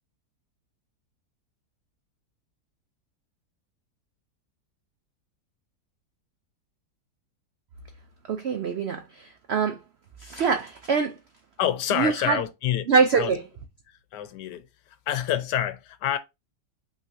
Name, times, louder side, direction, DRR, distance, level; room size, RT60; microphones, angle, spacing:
voice 1, 8.3-9.8 10.2-11.2 11.9-12.4 12.9-13.4, right 5 dB, 80° right, 0.5 m, -24 dB
voice 2, 11.6-12.9 13.2-13.3 14.1-14.7 15.1-16.2, left 11 dB, 90° left, 1.3 m, -27 dB
5.6 x 3.1 x 2.6 m
omnidirectional pair, 1.8 m